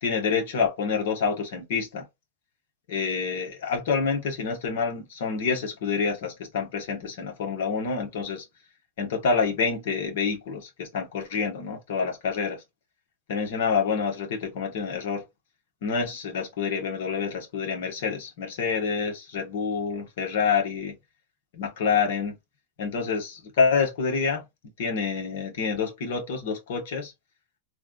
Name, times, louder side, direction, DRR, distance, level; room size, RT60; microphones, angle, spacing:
voice 1, 0.0-2.0 2.9-8.4 9.0-12.6 13.3-15.2 15.8-20.9 21.5-22.4 22.8-24.5 24.8-27.1, left 5 dB, 70° left, 1.4 m, -27 dB
3.2 x 2.4 x 2.5 m
hypercardioid pair, 125°, 0 cm